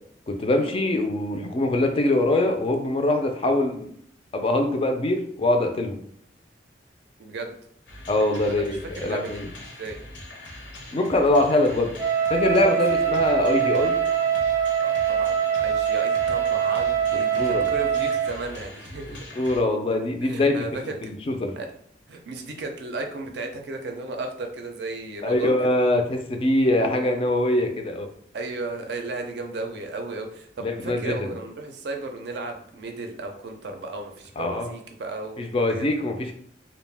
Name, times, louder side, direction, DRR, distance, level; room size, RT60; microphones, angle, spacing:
voice 1, 0.3-3.8 4.3-6.0 8.1-9.5 10.9-11.9 12.3-14.0 17.4-17.6 19.4-20.6 21.0-21.5 25.2-28.1 30.6-31.3 34.4-34.7 35.4-36.3, left 1 dB, 30° left, 4 dB, 0.3 m, -23 dB
voice 2, 7.2-7.5 8.5-8.6 9.0-9.4 9.8-10.0 14.8-19.2 20.2-21.0 21.6-21.7 22.1-25.8 28.3-36.0, right 3 dB, 65° right, 4 dB, 0.4 m, -34 dB
sound 1, 7.9-19.6, left 1 dB, 80° left, 0.6 m, -42 dB
Wind instrument woodwind instrument, 12.0-18.4, right 8 dB, 15° right, 0.5 m, -23 dB
2.4 x 2.1 x 3.3 m, 0.66 s
head